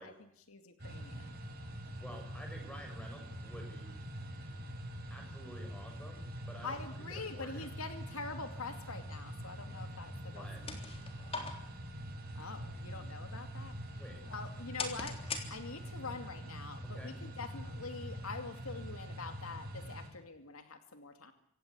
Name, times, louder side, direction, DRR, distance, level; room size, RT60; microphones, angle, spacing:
voice 1, 0.0-1.3 6.6-10.5 12.3-14.0 14.3-15.2 15.5-21.3, left 4 dB, 85° left, 8 dB, 2.4 m, -45 dB
sound 1, 0.8-20.1, equal, 45° right, 7.2 m, -45 dB
voice 2, 2.0-3.9 5.1-7.7 10.3-10.6 14.0-14.2 16.8-17.2, equal, 5° left, 3 dB, 7.2 m, -51 dB
sound 2, 10.3-16.0, left 4 dB, 25° left, 3.4 m, -45 dB
26.0 x 17.0 x 8.3 m, 0.70 s
head